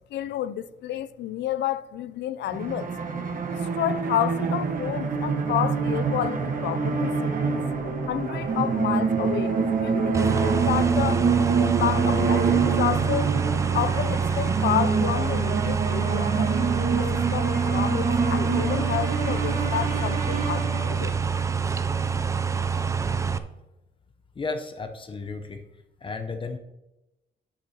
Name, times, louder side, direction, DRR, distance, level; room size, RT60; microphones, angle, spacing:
voice 1, 0.1-2.9 3.5-7.6 8.1-11.2 11.6-13.3 13.7-17.1 17.3-21.1, left 12 dB, 75° left, 0.4 m, -30 dB
sound 1, 2.5-21.2, right 5 dB, 50° right, 1.3 m, -26 dB
sound 2, 10.1-23.4, right 6 dB, 15° right, 0.4 m, -26 dB
voice 2, 24.4-25.6 26.0-26.6, left 4 dB, 30° left, 0.7 m, -33 dB
9.9 x 8.8 x 2.8 m
wide cardioid pair, 155°, 18 cm